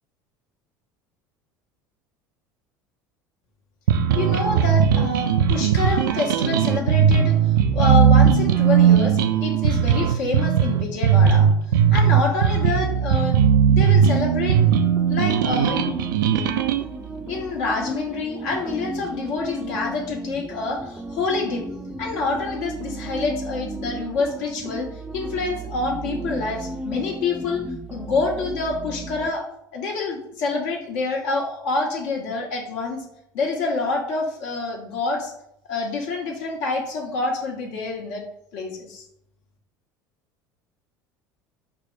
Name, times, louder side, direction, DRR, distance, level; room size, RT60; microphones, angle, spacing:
sound 1, 3.9-16.8, right 8 dB, 75° right, 0.4 m, -18 dB
voice 1, 4.1-7.4 7.7-11.5 11.9-13.4 13.7-14.6 15.1-15.9 17.3-21.6 22.0-24.9 25.1-27.6 27.9-29.4 29.7-33.0 33.3-35.3 35.7-38.2 38.5-39.0, left 3 dB, 65° left, -1 dB, 1.2 m, -27 dB
sound 2, 14.5-29.3, right 1 dB, 10° right, 0.5 m, -34 dB
5.3 x 2.1 x 4.6 m, 0.76 s
hypercardioid pair, 70°, 11 cm